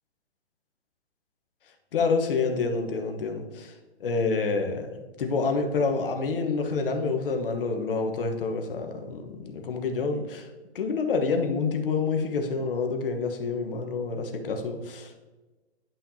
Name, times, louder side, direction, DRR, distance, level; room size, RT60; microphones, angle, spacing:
voice 1, 1.9-10.5 10.7-15.2, left 4 dB, 50° left, 4 dB, 1.2 m, -28 dB
10.5 x 5.5 x 2.8 m, 1.2 s
hypercardioid pair, 145°, 34 cm